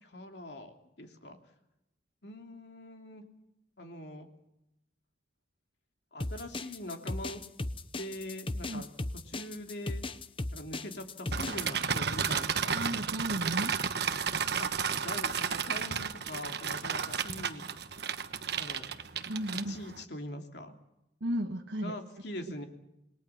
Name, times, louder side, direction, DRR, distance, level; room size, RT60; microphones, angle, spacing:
voice 1, 0.0-1.4 2.2-3.2 3.8-4.3 6.1-7.4 8.0-8.9 9.3-10.0 10.5-12.8 14.6-17.6 18.6-18.9 19.7-20.7 21.8-22.7, left 1 dB, 65° left, 4 dB, 2.9 m, -43 dB
sound 1, 6.2-11.7, left 2 dB, 30° left, 0.9 m, -36 dB
sound 2, 11.3-20.0, right 6 dB, 60° right, 1.3 m, -33 dB
voice 2, 12.7-13.7 19.3-19.8 21.2-22.0, right 1 dB, 80° right, 2 dB, 1.5 m, -34 dB
27.5 x 21.5 x 5.8 m, 0.86 s
head